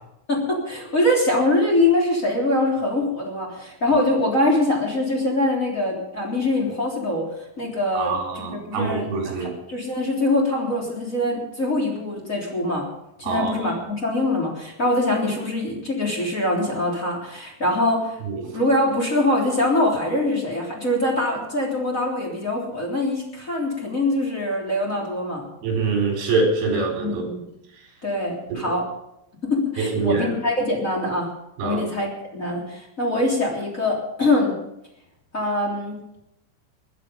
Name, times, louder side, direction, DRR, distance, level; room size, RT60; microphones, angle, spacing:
voice 1, 0.3-7.2 7.6-12.9 13.2-18.2 18.5-25.5 26.7-27.4 28.0-28.9 29.4-31.3 31.6-34.6 35.3-36.0, left 1 dB, 20° left, -2 dB, 2.8 m, -23 dB
voice 2, 8.0-9.5 13.3-13.5 25.6-27.2 29.9-30.3 31.6-31.8, right 4 dB, 50° right, 0 dB, 5.5 m, -24 dB
21.5 x 11.0 x 5.2 m, 0.83 s
omnidirectional pair, 6.0 m